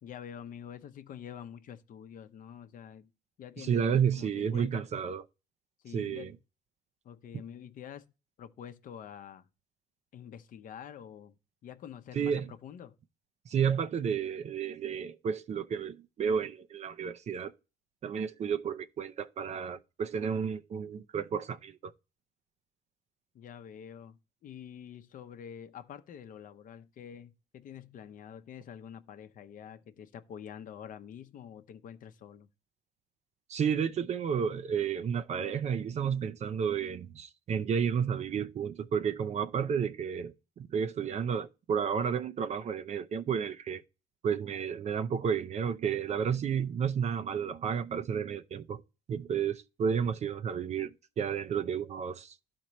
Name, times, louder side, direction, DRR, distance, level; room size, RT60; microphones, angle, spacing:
voice 1, 0.0-3.1 3.4-4.9 5.8-6.4 7.0-8.1 8.4-9.5 10.1-11.3 11.6-13.0 23.3-32.5, left 9 dB, 55° left, 0.7 m, -47 dB
voice 2, 3.6-5.2 5.9-6.3 12.1-12.5 13.5-17.5 18.0-21.9 33.5-43.8 44.2-48.8 49.1-52.4, right 7 dB, 40° right, 0.5 m, -31 dB
12.0 x 4.4 x 3.1 m
cardioid pair, 110°, 17 cm